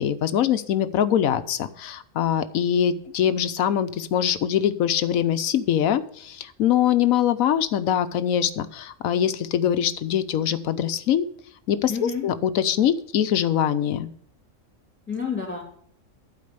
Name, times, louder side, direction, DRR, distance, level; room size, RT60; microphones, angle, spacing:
voice 1, 0.0-11.3 11.7-14.1, left 10 dB, 90° left, 12 dB, 1.2 m, -23 dB
voice 2, 11.9-12.3 15.1-15.6, left 6 dB, 10° left, 1 dB, 2.5 m, -29 dB
11.5 x 4.8 x 6.8 m, 0.63 s
omnidirectional pair, 1.4 m